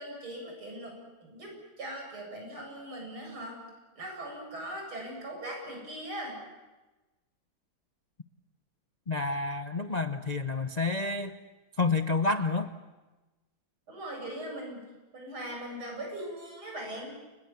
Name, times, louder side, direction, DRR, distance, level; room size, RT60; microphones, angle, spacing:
voice 1, 0.0-3.6 4.0-6.4 13.9-14.8 15.1-17.2, right 1 dB, 90° right, 0 dB, 8.8 m, -40 dB
voice 2, 9.1-11.4 11.8-12.7, left 3 dB, 90° left, 9 dB, 0.3 m, -29 dB
29.0 x 20.5 x 7.2 m, 1.1 s
omnidirectional pair, 2.2 m